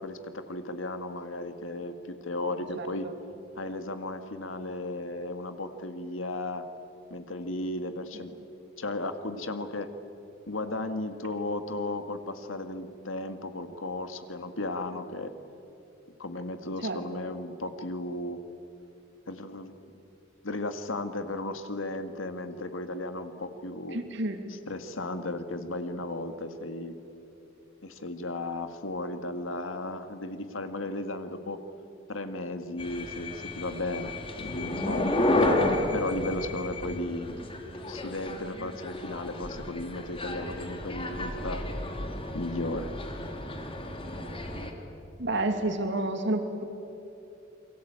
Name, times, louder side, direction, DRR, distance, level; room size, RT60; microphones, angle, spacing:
voice 1, 0.0-3.1 3.6-6.7 7.1-8.4 8.8-9.9 10.5-15.3 16.2-18.4 19.3-19.7 20.4-24.0 24.7-26.9 27.8-31.6 32.1-34.1 34.4-35.5 35.9-37.3 37.9-41.6 42.3-42.9, left 2 dB, 85° left, 8 dB, 2.0 m, -35 dB
voice 2, 2.7-3.1 8.1-8.2 16.8-17.2 23.9-24.4 35.7-35.8 45.2-46.6, right 2 dB, 65° right, 7 dB, 2.4 m, -30 dB
sound 1, 32.8-44.7, left 2 dB, 30° left, 2.7 m, -32 dB
28.5 x 23.0 x 8.9 m, 2.9 s
head